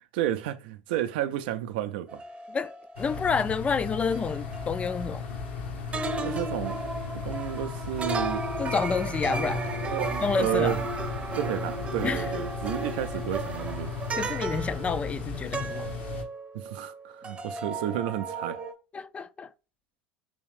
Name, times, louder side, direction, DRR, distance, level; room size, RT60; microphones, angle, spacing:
voice 1, 0.1-2.2 6.1-7.0 7.2-8.4 9.8-10.8 11.4-13.9 16.5-18.6, right 12 dB, 65° right, 0.4 m, -31 dB
sound 1, 2.1-5.6 5.9-17.0 17.2-18.7, right 3 dB, 20° right, 0.7 m, -35 dB
voice 2, 2.5-5.2 8.6-9.7 10.2-10.8 12.0-12.3 14.2-15.9 18.9-19.5, left 5 dB, 20° left, 0.3 m, -29 dB
sound 2, 3.0-16.2, left 5 dB, 70° left, 1.0 m, -36 dB
3.5 x 3.1 x 3.3 m
hypercardioid pair, 85°, 6 cm